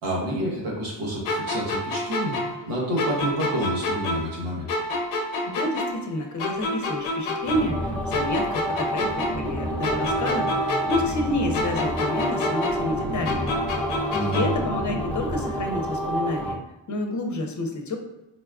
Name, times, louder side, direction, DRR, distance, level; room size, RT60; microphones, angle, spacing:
voice 1, 0.0-4.7 14.1-14.4, equal, 85° right, -4 dB, 1.4 m, -29 dB
sound 1, 1.2-4.4 4.7-7.8 8.1-11.3 11.5-14.7, left 1 dB, 90° left, 0.7 m, -28 dB
voice 2, 5.4-13.6 14.3-16.6 16.9-18.0, left 1 dB, 35° left, 3 dB, 0.8 m, -29 dB
sound 2, 7.4-16.5, equal, 5° left, 0.6 m, -29 dB
4.2 x 2.3 x 2.3 m, 0.96 s
supercardioid pair, 60°, 48 cm